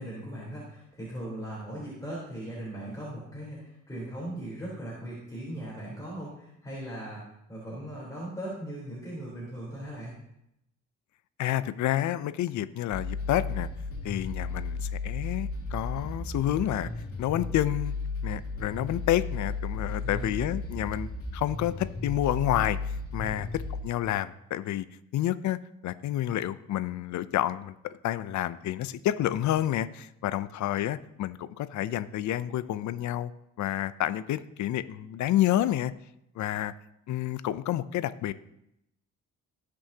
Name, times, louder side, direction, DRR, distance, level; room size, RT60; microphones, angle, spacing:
voice 1, 0.0-10.1 19.8-20.4 23.2-23.4, right 1 dB, 10° left, -7 dB, 3.8 m, -39 dB
voice 2, 11.4-13.7 14.0-16.9 17.2-17.9 18.2-24.9 25.1-27.7 28.0-33.3 33.6-35.9 36.4-36.7 37.1-38.3, left 13 dB, 70° left, 15 dB, 0.6 m, -29 dB
sound 1, 12.9-23.8, left 3 dB, 50° left, 2.5 m, -34 dB
18.5 x 6.3 x 2.9 m, 0.82 s
cardioid pair, 90°, 30 cm